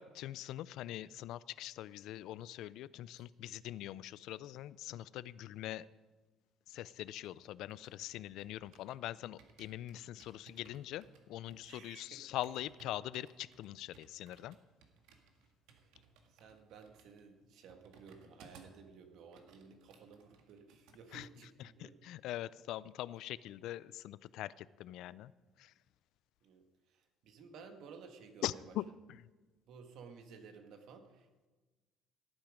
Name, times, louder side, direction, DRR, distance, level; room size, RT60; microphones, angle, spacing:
voice 1, 0.0-5.9 6.7-14.6 21.1-21.3 21.6-25.3 25.6-25.7 28.4-29.3, left 14 dB, 75° left, 19 dB, 0.4 m, -43 dB
sound 1, 6.7-9.0 9.4-18.9 19.2-21.0 21.3-21.5, right 5 dB, 85° right, 1.8 m, -63 dB
voice 2, 11.6-12.2 15.7-15.9 16.3-22.0 26.4-28.6 29.7-31.5, right 5 dB, 70° right, 6 dB, 1.8 m, -55 dB
17.5 x 9.0 x 5.0 m, 1.2 s
cardioid pair, 100°, 0 cm